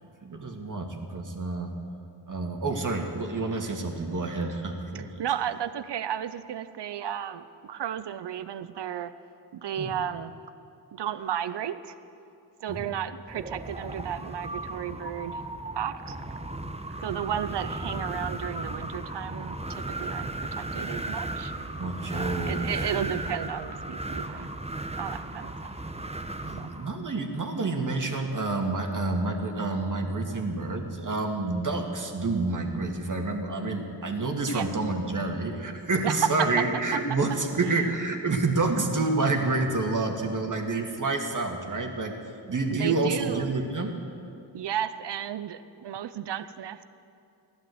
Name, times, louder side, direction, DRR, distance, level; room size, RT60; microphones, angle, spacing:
voice 1, 0.2-1.8 2.3-5.3 9.8-9.9 12.7-12.9 21.8-23.0 26.4-42.2 42.5-44.0, right 3 dB, 45° right, 2 dB, 2.3 m, -28 dB
voice 2, 4.9-9.1 9.5-10.3 10.9-12.0 12.6-16.2 16.9-21.5 22.1-24.5 25.0-25.7 26.6-26.7 34.5-34.7 36.0-36.5 36.9-37.0 37.6-37.9 42.7-43.5 44.5-46.8, right 9 dB, 70° right, 13 dB, 0.8 m, -33 dB
Wind, 13.3-26.9, right 2 dB, 15° right, 1.2 m, -35 dB
15.0 x 11.5 x 8.0 m, 2.6 s
cardioid pair, 50°, 43 cm